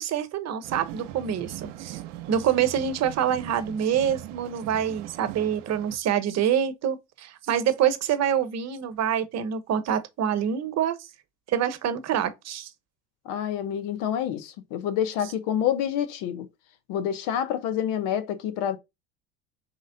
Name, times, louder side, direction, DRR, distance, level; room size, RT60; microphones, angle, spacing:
voice 1, 0.0-2.0 2.3-11.1 11.5-12.7, right 9 dB, 45° right, 1.0 m, -26 dB
sound 1, 0.6-6.0, right 13 dB, 75° right, 0.7 m, -40 dB
voice 2, 13.2-16.5 16.9-18.8, left 9 dB, 65° left, 1.1 m, -27 dB
4.5 x 3.0 x 3.8 m
hypercardioid pair, 75°, 36 cm